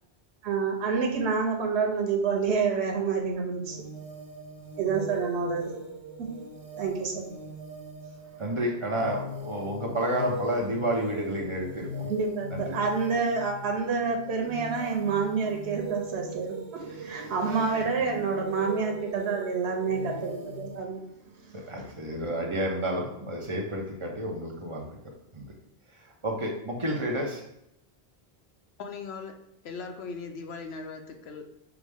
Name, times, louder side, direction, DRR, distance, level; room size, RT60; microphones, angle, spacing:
voice 1, 0.4-3.8 4.8-5.7 6.2-6.3 6.8-7.2 12.1-21.0 21.4-21.6, right 5 dB, 90° right, 1 dB, 1.0 m, -28 dB
sound 1, 3.6-20.8, right 1 dB, 70° right, 1.2 m, -40 dB
voice 2, 8.4-12.1 12.5-12.7 21.5-24.8 25.3-25.5 25.9-26.0 26.2-27.4, equal, 35° right, -1 dB, 0.7 m, -30 dB
voice 3, 28.8-29.3 29.6-31.5, left 4 dB, 75° left, 5 dB, 0.8 m, -39 dB
5.9 x 2.1 x 3.4 m, 0.80 s
omnidirectional pair, 1.1 m